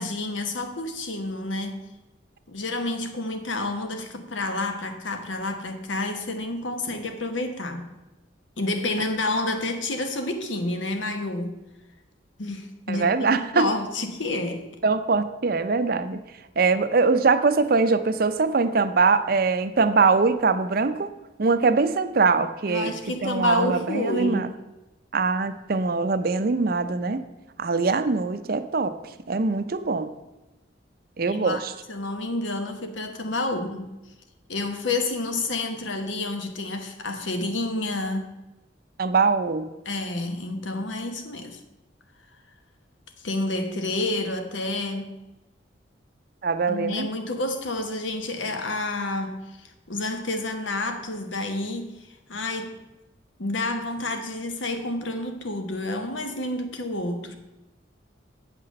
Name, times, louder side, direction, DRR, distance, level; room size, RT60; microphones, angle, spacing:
voice 1, 0.0-1.8 2.5-7.9 8.6-11.6 12.4-14.7 22.7-24.5 31.3-31.6 31.9-33.9 34.5-38.3 39.8-41.6 43.2-45.1 46.7-52.8 53.4-57.4, left 2 dB, 80° left, 1.2 m, -29 dB
voice 2, 12.9-13.7 14.8-16.2 16.6-21.1 21.4-22.9 23.2-24.5 25.1-27.2 27.6-28.9 29.3-30.1 31.2-31.7 39.0-39.7 46.4-47.1, right 4 dB, 50° right, 0.5 m, -22 dB
8.2 x 5.8 x 6.4 m
head